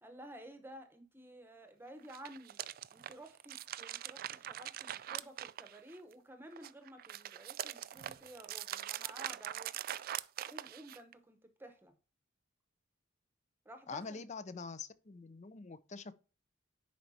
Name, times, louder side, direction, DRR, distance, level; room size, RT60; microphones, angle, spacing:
voice 1, 0.0-2.6 2.9-9.7 10.5-12.0 13.6-14.3, right 1 dB, 10° right, 0.9 m, -53 dB
sound 1, 2.0-6.1 6.5-11.1, right 12 dB, 50° right, 0.3 m, -43 dB
voice 2, 13.9-16.1, left 4 dB, 35° left, 0.5 m, -45 dB
10.5 x 4.5 x 2.8 m
head